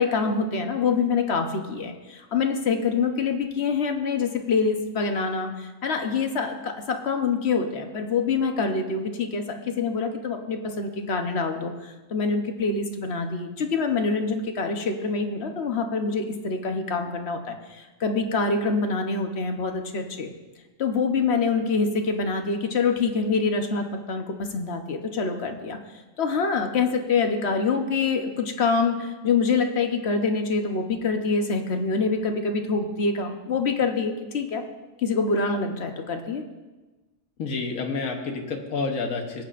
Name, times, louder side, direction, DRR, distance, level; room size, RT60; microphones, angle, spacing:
voice 1, 0.0-20.3 20.8-25.8 26.2-34.6 35.0-36.4, left 4 dB, 55° left, 5 dB, 1.1 m, -25 dB
voice 2, 37.4-39.4, left 4 dB, 70° left, 2 dB, 1.5 m, -29 dB
19.0 x 9.1 x 2.5 m, 1.2 s
omnidirectional pair, 1.5 m